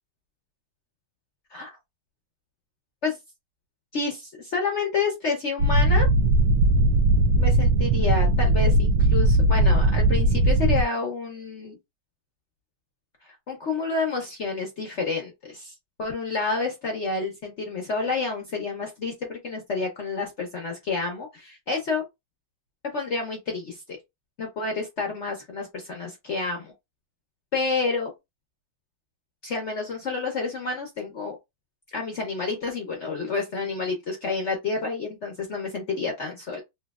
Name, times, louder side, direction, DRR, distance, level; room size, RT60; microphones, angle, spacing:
voice 1, 3.9-6.1 7.4-11.8 13.5-15.7 16.0-22.0 22.9-24.0 24.4-26.7 27.5-28.1 29.4-31.4 31.9-36.6, left 4 dB, 55° left, 0.8 m, -29 dB
sound 1, 5.6-10.8, right 1 dB, 75° right, 1.1 m, -19 dB
3.1 x 2.8 x 2.3 m
omnidirectional pair, 2.0 m